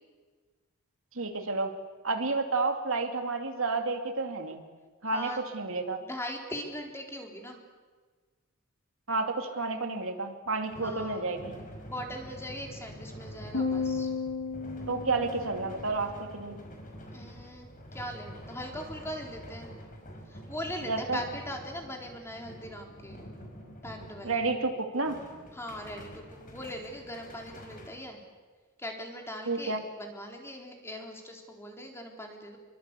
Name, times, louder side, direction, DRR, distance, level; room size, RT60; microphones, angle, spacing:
voice 1, 1.1-1.7 2.0-4.6 5.0-6.0 9.1-11.5 14.9-16.6 20.9-21.2 24.2-25.2 29.5-29.8, right 3 dB, 70° right, 5 dB, 2.7 m, -30 dB
voice 2, 5.1-5.4 6.0-7.6 10.8-11.2 11.9-14.1 17.1-19.7 20.3-23.2 23.8-24.4 25.5-28.2 28.8-32.6, equal, 10° left, 2 dB, 4.0 m, -40 dB
sound 1, 10.5-24.7 25.0-27.9, equal, 40° left, 5.9 m, -46 dB
sound 2, 13.5-16.0, left 4 dB, 80° left, 5.2 m, -33 dB
27.5 x 23.5 x 8.4 m, 1.4 s
head